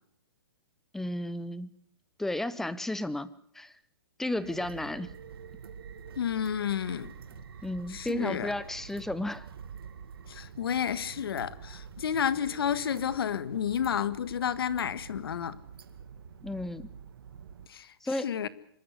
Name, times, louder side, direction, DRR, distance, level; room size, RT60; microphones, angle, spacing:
voice 1, 0.9-1.7 2.2-3.3 3.6-3.7 4.2-5.1 7.6-9.4 16.4-16.9 18.0-18.3, left 1 dB, 5° left, 0.8 m, -33 dB
sound 1, 4.3-17.7, right 7 dB, 70° right, 2.3 m, -47 dB
voice 2, 6.2-7.1 7.9-8.5 10.3-15.6 17.7-18.5, left 8 dB, 70° left, 1.6 m, -31 dB
26.0 x 13.5 x 9.6 m
hypercardioid pair, 155°, 13 cm